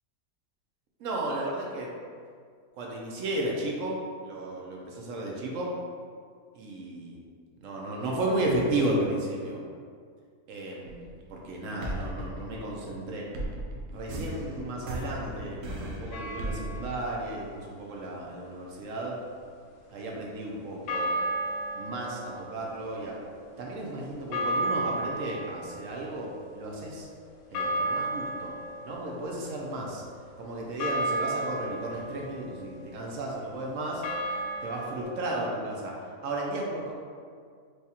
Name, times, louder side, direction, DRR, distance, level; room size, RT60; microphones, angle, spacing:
voice 1, 1.0-1.9 2.7-5.7 6.5-7.2 7.6-9.6 10.5-13.2 13.9-19.2 19.9-21.2 21.7-23.2 23.6-27.1 27.5-28.5 28.8-30.0 30.4-34.0 34.6-36.0 36.2-36.9, right 1 dB, 70° right, -2 dB, 0.9 m, -33 dB
sound 1, 10.9-11.4 11.8-17.7, right 1 dB, 90° right, 1.1 m, -37 dB
sound 2, 16.1-17.2 20.9-35.0, right 1 dB, 85° left, 1.1 m, -35 dB
4.7 x 2.3 x 2.8 m, 2.1 s
omnidirectional pair, 1.5 m